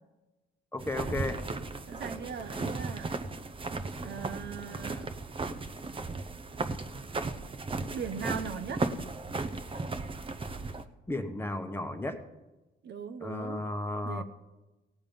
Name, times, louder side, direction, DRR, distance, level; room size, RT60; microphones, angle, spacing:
voice 1, 0.7-1.4 11.1-12.2 13.2-14.2, left 2 dB, 10° left, 6 dB, 1.1 m, -34 dB
sound 1, 0.8-10.8, right 3 dB, 25° right, 0.8 m, -36 dB
voice 2, 1.9-3.1 4.0-5.1 7.9-8.8 12.8-13.7 14.0-14.2, right 6 dB, 60° right, 8 dB, 0.9 m, -39 dB
17.5 x 7.3 x 5.4 m, 1.1 s
cardioid pair, 90°, 20 cm